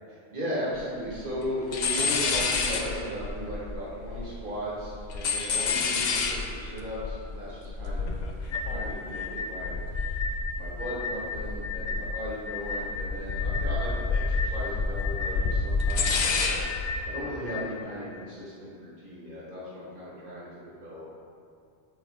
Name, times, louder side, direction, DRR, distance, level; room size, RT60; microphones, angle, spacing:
voice 1, 0.3-8.1 8.4-9.7 10.5-16.6 17.0-21.1, equal, 50° right, -7 dB, 1.7 m, -36 dB
sound 1, 0.8-0.9 1.0-1.5 1.7-4.5 4.8-11.1 11.3-12.3 12.7-17.0, left 4 dB, 55° left, 0.5 m, -29 dB
sound 2, 8.5-17.7, left 4 dB, 70° left, 0.9 m, -35 dB
7.5 x 4.2 x 3.3 m, 2.4 s
omnidirectional pair, 1.1 m